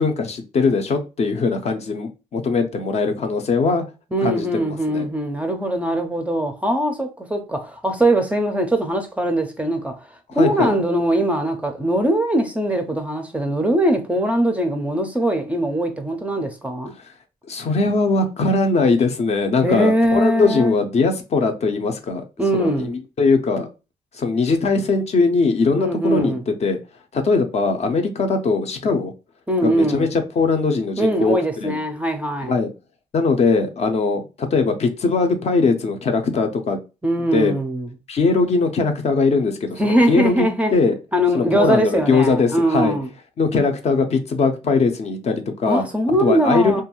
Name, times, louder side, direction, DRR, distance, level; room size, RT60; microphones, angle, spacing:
voice 1, 0.0-3.8 4.2-5.1 10.4-10.7 17.5-22.2 22.5-23.7 24.1-26.8 27.1-29.1 29.6-31.8 32.5-32.7 33.1-36.8 37.3-37.5 38.1-40.9 41.3-42.9 43.4-45.8 46.2-46.8, left 4 dB, 45° left, 0.5 m, -20 dB
voice 2, 4.1-10.0 10.3-16.9 19.6-20.8 22.4-22.9 25.7-26.4 29.5-30.1 31.0-32.6 37.0-37.9 39.8-40.7 41.1-43.1 45.7-46.8, right 1 dB, 10° right, 0.4 m, -21 dB
2.6 x 2.3 x 2.9 m
cardioid pair, 110°, 16 cm